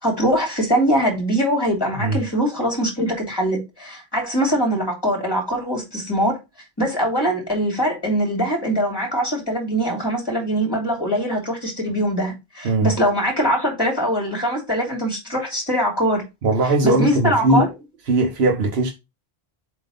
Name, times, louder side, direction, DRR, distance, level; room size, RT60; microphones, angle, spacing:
voice 1, 0.0-6.4 6.8-16.2 16.6-17.7, equal, 20° left, 3.0 m, -22 dB
voice 2, 16.4-17.7 18.1-18.9, right 2 dB, 75° right, 1.3 m, -19 dB
7.5 x 3.0 x 5.1 m
omnidirectional pair, 1.1 m